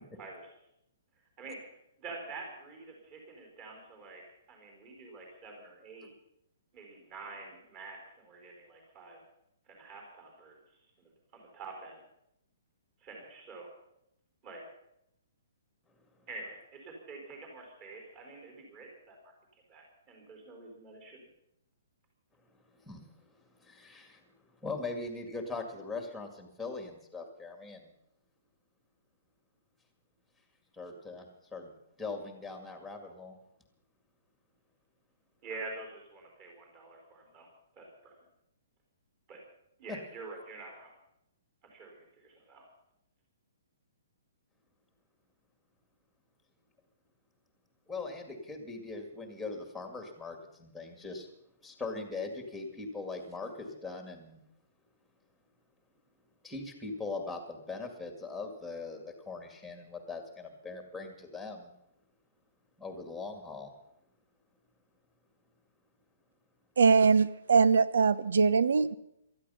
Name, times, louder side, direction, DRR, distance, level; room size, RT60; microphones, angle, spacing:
voice 1, 2.0-4.2 4.5-6.1 6.7-9.2 9.7-10.5 11.0-12.0 13.0-13.7 14.4-14.6 16.3-21.3 35.4-37.5 37.8-38.1 39.3-39.4 39.8-40.9 41.7-42.7, right 3 dB, 25° right, 4.5 m, -47 dB
voice 2, 22.7-24.2 24.6-27.9 30.7-31.3 31.5-33.4 39.9-40.0 47.9-51.3 51.6-54.4 56.4-61.7 62.8-63.7, left 3 dB, ahead, 2.1 m, -41 dB
voice 3, 66.8-68.9, right 5 dB, 90° right, 0.9 m, -22 dB
19.0 x 13.5 x 5.6 m
hypercardioid pair, 170°, 0 cm